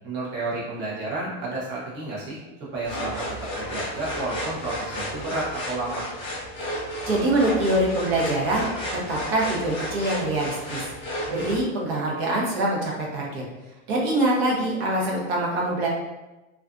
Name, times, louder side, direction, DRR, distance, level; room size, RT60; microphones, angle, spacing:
voice 1, 0.0-2.4 2.7-3.3 3.6-6.0, right 2 dB, 30° right, -6 dB, 0.8 m, -31 dB
sound 1, 2.8-11.6, equal, 20° left, 0.4 m, -32 dB
voice 2, 7.0-8.7 8.9-10.8 11.3-13.4 13.9-15.9, right 1 dB, 65° right, -3 dB, 0.8 m, -24 dB
2.4 x 2.2 x 2.4 m, 1.1 s
supercardioid pair, 165°, 34 cm